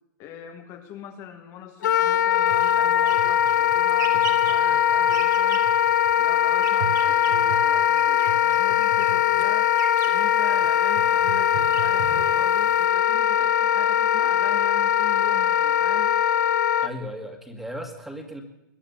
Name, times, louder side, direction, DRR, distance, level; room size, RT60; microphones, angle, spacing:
voice 1, 0.2-5.6 6.2-9.7 10.0-16.1, left 9 dB, 30° left, 5 dB, 1.4 m, -42 dB
Wind instrument woodwind instrument, 1.8-16.9, left 10 dB, 70° left, 0.8 m, -21 dB
sound 1, 2.5-12.9, right 6 dB, 75° right, 2.8 m, -38 dB
voice 2, 16.8-18.4, equal, 5° right, 5 dB, 1.9 m, -36 dB
21.0 x 9.9 x 6.9 m, 0.92 s
hypercardioid pair, 145°, 10 cm